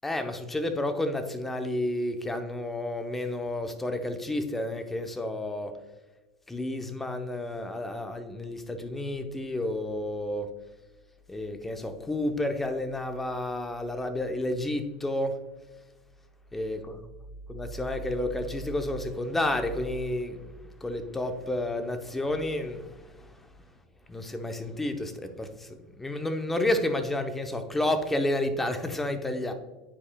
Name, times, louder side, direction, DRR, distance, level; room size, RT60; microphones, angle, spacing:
voice 1, 0.0-5.7 6.5-10.5 11.3-15.4 16.5-17.0 17.5-23.4 24.1-29.5, left 1 dB, 10° left, 7 dB, 0.8 m, -31 dB
10.0 x 4.7 x 2.3 m, 1.2 s
hypercardioid pair, 105°, 2 cm